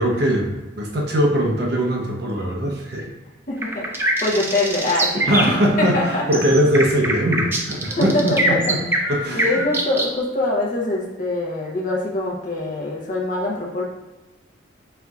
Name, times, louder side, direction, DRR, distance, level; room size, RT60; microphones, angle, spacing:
voice 1, 0.0-3.1 5.1-8.8 9.1-9.6, equal, 55° right, 0 dB, 0.6 m, -21 dB
voice 2, 3.5-5.3 5.8-6.3 8.0-8.8 9.3-13.8, left 2 dB, 40° left, -2 dB, 0.7 m, -24 dB
sound 1, 3.6-10.1, right 1 dB, 10° right, 0.3 m, -23 dB
4.4 x 3.6 x 2.3 m, 1.1 s
head